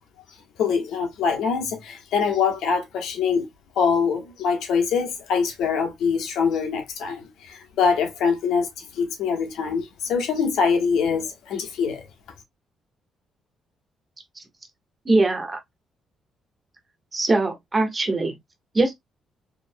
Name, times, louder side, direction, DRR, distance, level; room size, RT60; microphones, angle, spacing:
voice 1, 0.6-3.5 3.8-12.1, left 6 dB, 85° left, 1.1 m, -24 dB
voice 2, 15.0-15.6 17.1-18.4 18.7-18.9, right 2 dB, 25° right, 1.4 m, -21 dB
4.7 x 3.0 x 2.2 m
cardioid pair, 90°, 0 cm